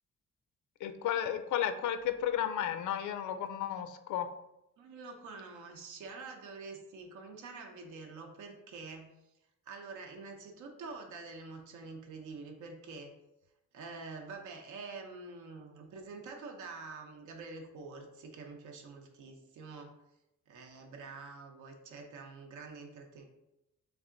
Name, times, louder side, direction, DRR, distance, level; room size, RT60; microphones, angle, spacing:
voice 1, 0.8-4.3, left 10 dB, 85° left, 9 dB, 0.5 m, -33 dB
voice 2, 4.8-9.1 9.7-13.1 13.7-19.9 20.5-23.2, right 4 dB, 90° right, 2 dB, 0.8 m, -46 dB
3.6 x 3.3 x 3.8 m, 0.87 s
cardioid pair, 165°, 29 cm